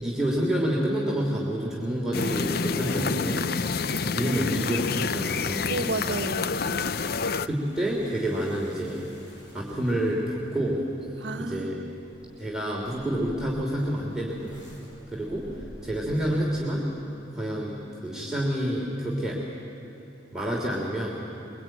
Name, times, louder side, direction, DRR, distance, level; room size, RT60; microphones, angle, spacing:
voice 1, 0.0-3.5 4.0-5.7 7.4-9.1 9.5-10.8 11.4-11.8 12.4-14.7 15.1-15.5 15.8-16.8 17.3-19.4 20.3-21.2, right 1 dB, 5° right, -4 dB, 3.0 m, -28 dB
sound 1, 2.1-7.5, left 5 dB, 55° left, 0.6 m, -28 dB
voice 2, 4.2-4.9 5.6-6.9 11.2-12.0, right 2 dB, 80° right, 7 dB, 1.2 m, -33 dB
sound 2, 6.2-16.6, equal, 85° left, 7.8 m, -50 dB
23.5 x 23.0 x 9.1 m, 2.9 s
head